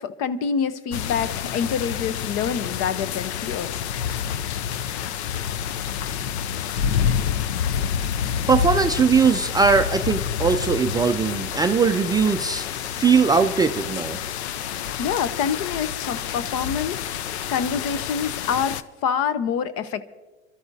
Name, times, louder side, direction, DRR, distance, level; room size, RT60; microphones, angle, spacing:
voice 1, 0.0-3.7 15.0-17.0 17.5-20.1, left 7 dB, 50° left, 14 dB, 0.9 m, -26 dB
sound 1, 0.9-18.8, left 8 dB, 85° left, 0.6 m, -28 dB
voice 2, 8.5-14.2, right 5 dB, 15° right, 6 dB, 0.3 m, -20 dB
27.0 x 13.0 x 2.7 m, 1.2 s
hypercardioid pair, 105°, 33 cm